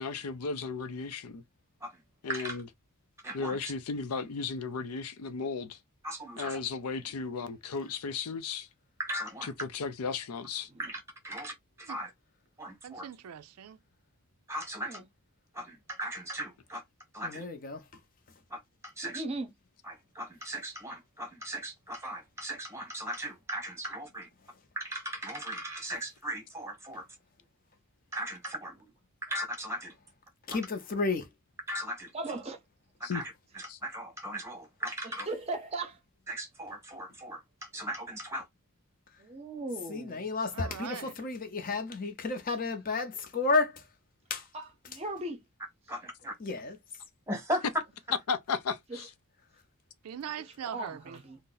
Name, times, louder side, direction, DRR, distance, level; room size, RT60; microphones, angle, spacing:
voice 1, 0.0-1.4 2.2-2.7 3.3-5.8 6.4-8.7 9.4-10.7 33.0-33.2 33.7-33.8 48.3-49.1, left 5 dB, 90° left, 0.5 m, -35 dB
voice 2, 3.2-3.6 6.0-6.6 9.0-9.5 10.8-12.1 12.6-13.1 14.5-15.0 15.5-16.8 17.1-17.5 18.5-19.2 19.9-24.3 24.8-27.1 28.1-28.7 29.3-29.9 30.5-30.6 31.7-32.1 33.1-35.3 36.3-38.4 45.9-46.3 47.3-47.6, right 1 dB, 10° right, 1.0 m, -38 dB
voice 3, 12.8-13.8 40.5-41.2 50.0-51.2, right 8 dB, 85° right, 0.4 m, -41 dB
voice 4, 17.2-17.8 30.5-31.3 39.9-43.8 44.3-44.4 46.4-46.8, left 3 dB, 40° left, 0.6 m, -31 dB
voice 5, 19.0-19.5 28.8-28.9 32.1-32.6 35.0-36.0 39.2-40.3 44.5-45.4 48.9-49.0 50.6-51.4, right 2 dB, 30° right, 0.6 m, -38 dB
2.6 x 2.0 x 3.8 m
head